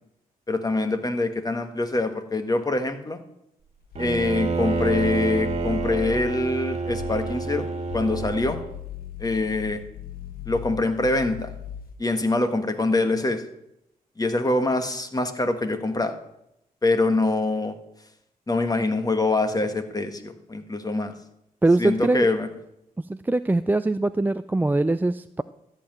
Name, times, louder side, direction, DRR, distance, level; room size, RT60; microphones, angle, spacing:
voice 1, 0.5-3.2 4.0-8.6 9.2-9.8 10.5-11.5 12.0-13.4 14.2-16.1 16.8-17.8 18.5-21.1 21.8-22.5, left 2 dB, 25° left, 7 dB, 1.6 m, -24 dB
sound 1, 3.8-6.5 6.8-7.4 7.8-12.0, left 7 dB, 70° left, 1.4 m, -38 dB
Bowed string instrument, 4.0-8.8, right 4 dB, 45° right, 1.9 m, -28 dB
voice 2, 21.6-22.3 23.1-25.4, right 2 dB, 10° right, 12 dB, 0.4 m, -22 dB
13.5 x 5.8 x 9.1 m, 0.82 s
cardioid pair, 65°, 15 cm